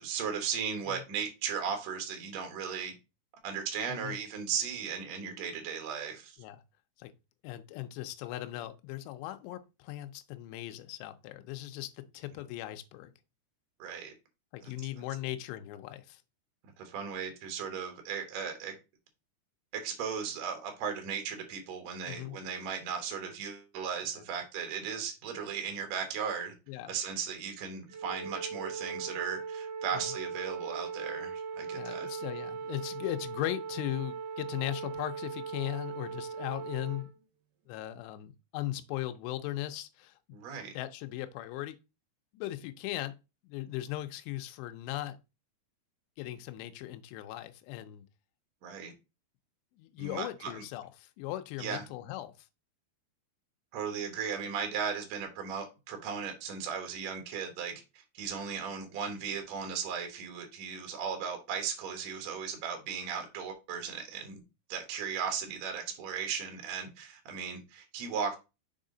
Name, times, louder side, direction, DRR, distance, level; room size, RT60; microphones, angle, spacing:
voice 1, 0.0-2.9 3.4-6.4 13.8-14.1 14.6-14.7 16.8-18.8 19.7-26.5 26.9-32.1 40.3-40.7 48.6-48.9 50.0-50.6 51.6-51.8 53.7-64.4 64.7-68.3, right 7 dB, 60° right, 1.9 m, -36 dB
voice 2, 7.4-13.1 14.5-16.2 22.0-22.4 26.7-27.0 29.9-30.0 31.7-37.1 37.7-40.2 40.7-41.8 42.3-43.1 43.4-45.2 46.2-48.0 49.8-52.5, left 15 dB, 80° left, 2.7 m, -38 dB
Wind instrument woodwind instrument, 27.9-37.1, right 5 dB, 85° right, 1.8 m, -39 dB
6.3 x 4.6 x 3.8 m
omnidirectional pair, 5.2 m